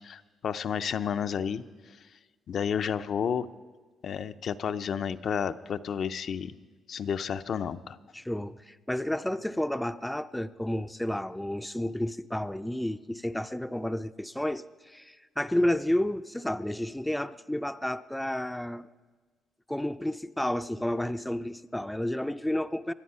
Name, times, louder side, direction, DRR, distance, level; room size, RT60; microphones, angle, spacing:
voice 1, 0.0-1.6 2.5-3.5 4.0-6.5 6.9-8.0, left 7 dB, 60° left, 11 dB, 0.5 m, -31 dB
voice 2, 8.1-18.9 19.7-22.9, left 1 dB, 5° left, 11 dB, 0.4 m, -31 dB
24.5 x 9.4 x 5.5 m, 1.4 s
cardioid pair, 90°, 0 cm